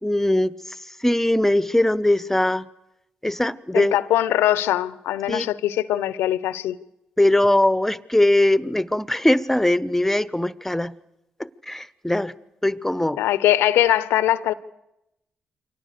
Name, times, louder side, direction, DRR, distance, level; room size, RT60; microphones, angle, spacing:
voice 1, 0.0-0.5 1.0-2.6 3.2-4.0 5.3-5.5 7.2-10.9 11.4-12.3 12.6-13.2, left 1 dB, 10° left, 1.1 m, -20 dB
voice 2, 3.7-6.8 13.1-14.5, left 13 dB, 75° left, 0.8 m, -21 dB
28.5 x 24.0 x 6.9 m
hypercardioid pair, 40°, 4 cm